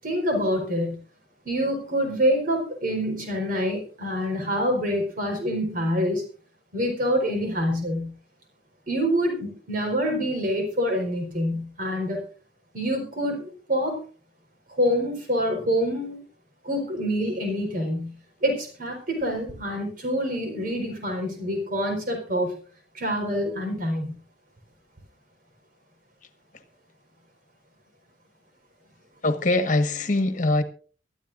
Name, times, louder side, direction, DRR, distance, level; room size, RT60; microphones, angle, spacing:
voice 1, 0.0-1.0 1.4-6.2 6.7-8.1 8.9-12.2 12.7-14.0 14.8-16.2 16.6-18.1 18.4-22.5 22.9-24.1, equal, 50° right, 4.6 m, -26 dB
voice 2, 29.2-30.6, left 2 dB, 45° left, 1.5 m, -22 dB
23.0 x 12.5 x 2.6 m
head